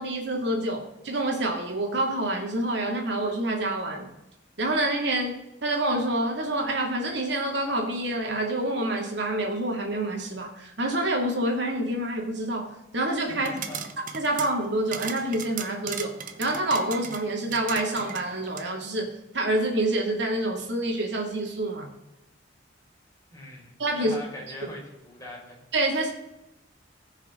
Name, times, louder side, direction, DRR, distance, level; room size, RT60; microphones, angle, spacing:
voice 1, 0.0-4.1 4.6-13.5 14.1-21.9 23.8-24.2 25.7-26.1, right 1 dB, 65° right, 1 dB, 2.6 m, -27 dB
voice 2, 13.3-13.8 23.3-25.6, left 1 dB, 20° left, -4 dB, 4.5 m, -41 dB
sound 1, 13.4-18.7, right 7 dB, 45° right, 0.9 m, -38 dB
19.0 x 6.4 x 3.9 m, 0.90 s
head